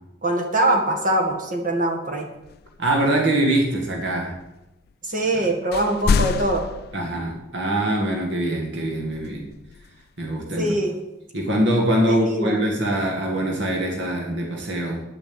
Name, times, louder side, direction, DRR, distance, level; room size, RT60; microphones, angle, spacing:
voice 1, 0.2-2.3 5.0-6.6 10.6-11.0 12.1-12.6, right 1 dB, 45° right, 2 dB, 2.0 m, -23 dB
sound 1, 1.2-1.3 2.4-5.4 5.7-7.9 9.1-10.2 12.0-12.6 13.3-14.1, left 5 dB, 50° left, 0.3 m, -30 dB
voice 2, 2.8-4.4 5.4-5.5 6.9-9.5 10.2-10.8 11.3-15.0, right 1 dB, 65° right, 1 dB, 1.9 m, -23 dB
10.0 x 6.9 x 8.6 m, 0.95 s
head